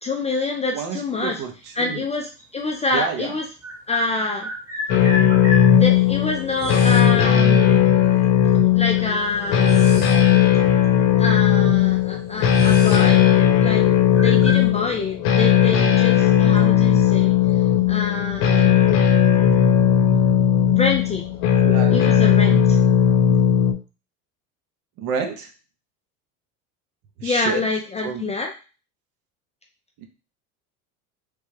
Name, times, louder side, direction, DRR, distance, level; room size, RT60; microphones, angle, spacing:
voice 1, 0.0-1.4 1.8-3.5 3.9-4.5 5.7-7.8 8.7-9.9 11.2-13.2 13.6-13.8 14.1-17.4 17.9-18.8 20.7-21.2 21.9-22.6 27.2-28.5, left 3 dB, 15° left, 1 dB, 0.3 m, -26 dB
voice 2, 0.7-1.5 1.8-2.0 2.9-3.3 21.5-22.6 25.0-25.5 27.2-27.6 28.0-28.2, right 6 dB, 55° right, 4 dB, 0.9 m, -29 dB
sound 1, 2.4-2.5 3.6-5.7 6.6-7.1 8.2-8.3 8.9-10.3 10.6-10.8 11.6-11.7 12.0-13.1 13.3-13.6 14.1-14.7, left 2 dB, 5° right, 1.0 m, -32 dB
sound 2, 4.9-23.7, left 9 dB, 70° left, 0.8 m, -17 dB
3.3 x 2.2 x 3.2 m, 0.33 s
supercardioid pair, 90°, 42 cm